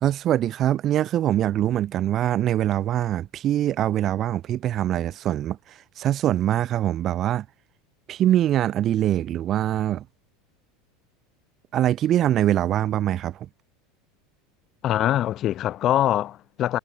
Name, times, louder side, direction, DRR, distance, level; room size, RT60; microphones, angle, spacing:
voice 1, 0.0-5.6 6.0-7.4 8.1-10.0 11.7-13.4, right 12 dB, 45° right, 1.0 m, -23 dB
voice 2, 14.8-16.8, left 12 dB, 45° left, 0.9 m, -23 dB
hypercardioid pair, 90°, 0 cm